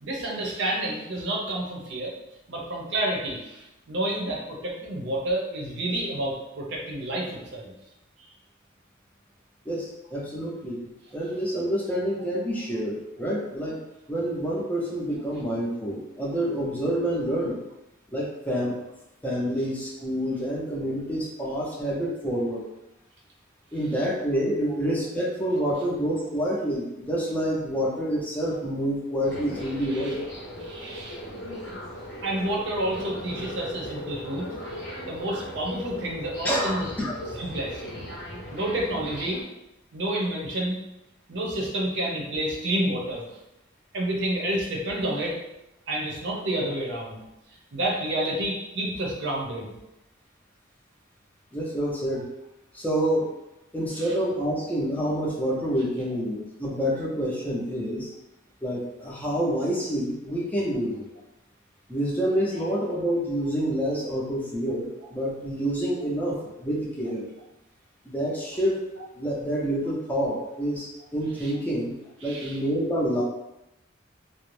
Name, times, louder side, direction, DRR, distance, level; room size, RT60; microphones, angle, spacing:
voice 1, 0.0-2.1 2.5-7.7 29.9-30.2 30.6-31.2 32.2-34.5 35.1-36.9 37.4-37.8 38.5-39.4 39.9-40.8 41.3-43.2 43.9-45.3 45.9-47.2 47.7-49.7 54.0-54.1 71.4-71.5 72.2-72.5, right 1 dB, 65° right, -2 dB, 0.6 m, -29 dB
voice 2, 9.7-10.8 11.1-13.8 14.1-17.6 18.1-18.8 19.2-22.6 23.7-30.2 36.4-37.2 51.5-52.3 52.7-53.3 53.7-58.1 58.6-61.1 61.9-67.3 68.0-68.8 69.1-72.0 72.2-73.2, equal, 10° left, -5 dB, 0.5 m, -27 dB
sound 1, 29.2-39.4, equal, 75° left, 0.8 m, -38 dB
2.5 x 2.0 x 3.1 m, 0.90 s
head